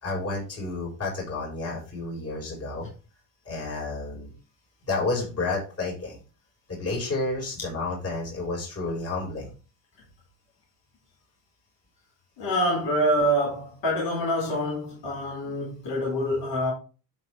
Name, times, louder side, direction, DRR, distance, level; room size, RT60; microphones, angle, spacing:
voice 1, 0.0-2.9 3.4-4.3 4.8-6.2 6.7-9.5, left 3 dB, 30° left, 5.1 m, -30 dB
voice 2, 12.4-16.7, equal, 65° left, 4.5 m, -26 dB
12.0 x 4.2 x 3.4 m
cardioid pair, 115°, 46 cm